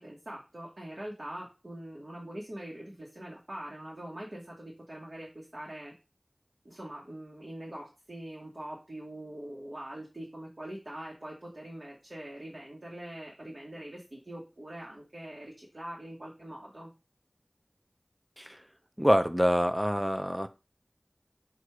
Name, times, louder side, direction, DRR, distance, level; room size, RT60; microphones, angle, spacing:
voice 1, 0.0-5.9 6.6-16.9, right 1 dB, 65° right, -3 dB, 1.2 m, -43 dB
voice 2, 19.0-20.5, equal, 5° right, 9 dB, 0.5 m, -26 dB
4.7 x 2.5 x 4.6 m, 0.29 s
wide cardioid pair, 40°, 0 cm